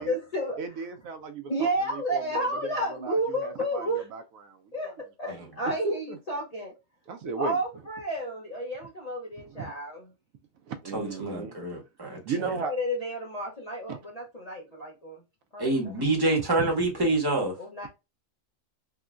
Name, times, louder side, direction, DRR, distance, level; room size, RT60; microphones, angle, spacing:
voice 1, 0.0-0.6 1.5-4.0 4.7-4.9 5.2-6.7 7.4-10.1 12.6-15.2 15.5-15.7 17.6-17.9, right 1 dB, 40° left, 0.6 m, -31 dB
voice 2, 0.6-4.9 5.2-5.3 5.8-6.2 7.1-7.6 9.4-9.7 10.7-11.6 12.2-12.7 13.9-14.0 15.9-16.0 16.6-16.7, right 4 dB, 75° right, 1.0 m, -36 dB
voice 3, 10.9-12.2 15.6-17.6, right 2 dB, 20° right, 0.7 m, -27 dB
3.6 x 2.1 x 2.4 m
omnidirectional pair, 1.5 m